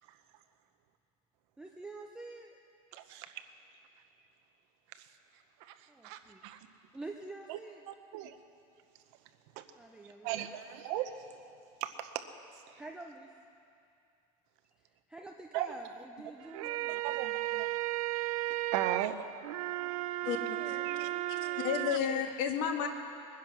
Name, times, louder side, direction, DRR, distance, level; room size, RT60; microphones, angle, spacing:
voice 1, 1.6-2.6 5.9-6.5 6.9-7.8 9.8-10.6 12.8-13.3 15.1-17.3 20.2-22.0, right 2 dB, 5° right, 1 dB, 0.4 m, -48 dB
voice 2, 2.9-3.3 5.7-5.8 6.0-6.6 7.5-7.6 7.9-8.4 9.6-9.7 10.2-11.1 11.8-12.2 15.5-15.7 17.0-17.7 18.7-19.2 20.8-21.1, right 13 dB, 55° right, 9 dB, 0.9 m, -36 dB
sound 1, 16.4-22.0, right 17 dB, 85° right, 0.4 m, -35 dB
voice 3, 20.2-20.7 21.3-22.9, left 8 dB, 55° left, 5 dB, 1.5 m, -32 dB
22.0 x 10.5 x 6.1 m, 2.5 s
cardioid pair, 170°, 18 cm